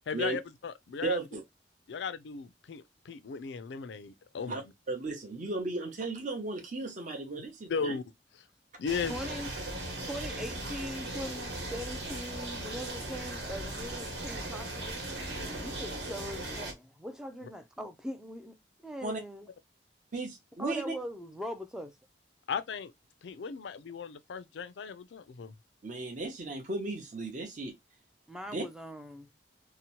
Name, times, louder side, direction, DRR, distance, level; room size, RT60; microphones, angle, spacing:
voice 1, 0.1-1.2 1.9-4.7 7.7-8.0 8.8-9.2 22.5-22.9 23.2-25.5, left 6 dB, 80° left, 0.4 m, -36 dB
voice 2, 1.0-1.4 4.5-4.6 4.9-8.0 19.0-19.2 20.1-20.8 25.8-27.7 28.5-28.6, right 3 dB, 45° right, 0.7 m, -35 dB
sound 1, 8.9-16.7, right 1 dB, 75° right, 1.2 m, -38 dB
voice 3, 9.1-9.5 10.0-15.0 15.6-18.6 18.8-19.5 20.6-21.9 28.3-29.3, equal, 5° right, 0.3 m, -41 dB
2.8 x 2.0 x 2.8 m
head